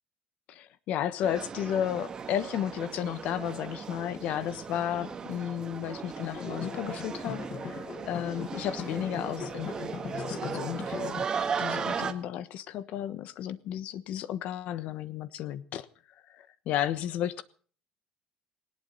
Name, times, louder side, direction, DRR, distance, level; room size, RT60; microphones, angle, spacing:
voice 1, 0.5-11.2 11.6-15.9 16.3-17.4, left 10 dB, 65° left, 15 dB, 1.2 m, -33 dB
sound 1, 1.2-12.1, right 6 dB, 30° right, 1.6 m, -37 dB
sound 2, 6.2-11.3, left 7 dB, 40° left, 1.3 m, -40 dB
19.0 x 17.5 x 4.0 m, 0.43 s
cardioid pair, 140°, 2 cm